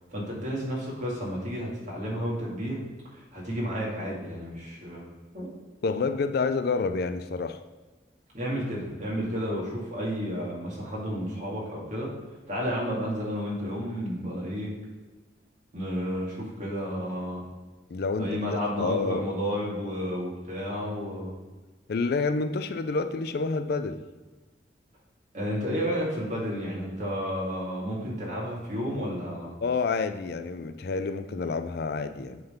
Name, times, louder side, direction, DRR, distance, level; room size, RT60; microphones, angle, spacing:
voice 1, 0.1-2.8 3.1-5.1 5.3-5.5 8.3-14.7 15.7-17.5 18.2-21.4 25.3-29.5, equal, 45° right, -4 dB, 2.2 m, -31 dB
voice 2, 5.8-7.6 17.9-19.2 21.9-24.0 29.6-32.4, left 4 dB, 60° left, 9 dB, 0.4 m, -28 dB
7.9 x 3.9 x 5.1 m, 1.2 s
head